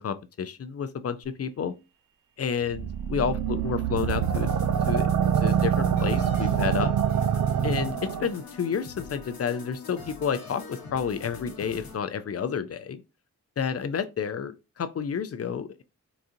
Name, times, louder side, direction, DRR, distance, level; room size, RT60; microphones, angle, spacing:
voice 1, 0.0-1.7 2.4-4.6 4.9-5.1 5.4-6.9 7.6-13.0 13.6-15.8, left 7 dB, 45° left, 0.5 m, -30 dB
sound 1, 2.7-8.3, right 8 dB, 60° right, 0.5 m, -25 dB
sound 2, 4.0-12.0, left 4 dB, 85° left, 0.9 m, -43 dB
4.0 x 2.4 x 2.6 m
supercardioid pair, 40°, 35 cm